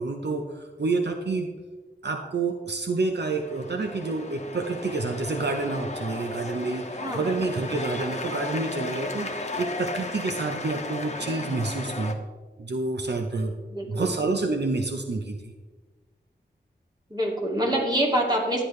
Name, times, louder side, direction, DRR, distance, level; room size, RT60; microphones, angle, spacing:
voice 1, 0.0-1.5 2.0-12.1 12.6-13.5 13.8-15.5, right 3 dB, 70° right, 4 dB, 0.9 m, -28 dB
sound 1, 3.2-12.1, left 2 dB, 40° left, 1.1 m, -35 dB
voice 2, 7.0-7.5 13.7-14.1 17.1-18.6, right 1 dB, 25° right, -1 dB, 2.6 m, -26 dB
12.5 x 10.0 x 3.3 m, 1.3 s
wide cardioid pair, 65°, 18 cm